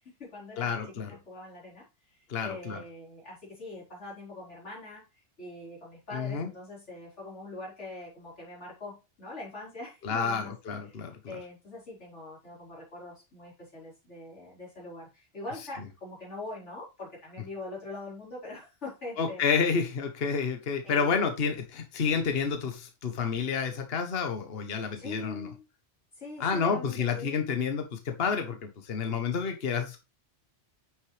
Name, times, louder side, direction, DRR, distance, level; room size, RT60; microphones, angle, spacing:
voice 1, 0.0-10.6 10.9-19.4 20.8-21.3 24.9-25.6 26.1-27.4, left 2 dB, 75° left, -5 dB, 5.0 m, -43 dB
voice 2, 0.6-1.1 2.3-2.8 6.1-6.5 10.0-11.4 19.2-25.5 26.4-30.0, left 6 dB, 55° left, 6 dB, 1.3 m, -29 dB
9.6 x 6.4 x 3.3 m, 0.27 s
omnidirectional pair, 1.2 m